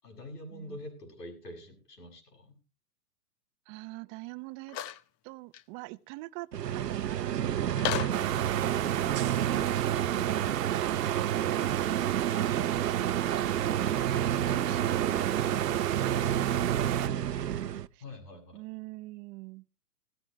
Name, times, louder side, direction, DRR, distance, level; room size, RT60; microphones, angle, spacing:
voice 1, 0.0-2.6 18.0-18.6, left 1 dB, 85° left, 7.6 m, -46 dB
voice 2, 3.7-4.8 5.2-8.0 9.0-9.9 12.9-13.4 14.5-15.3 16.0-18.0 18.5-19.7, right 22 dB, 35° right, 0.8 m, -45 dB
sound 1, 4.7-5.0 5.5-5.6 7.8-8.3, left 11 dB, 30° left, 0.8 m, -33 dB
sound 2, 6.5-17.9, right 10 dB, 90° right, 0.9 m, -29 dB
sound 3, 8.1-17.1, right 14 dB, 60° right, 1.2 m, -35 dB
17.0 x 14.5 x 3.2 m
hypercardioid pair, 115°, 47 cm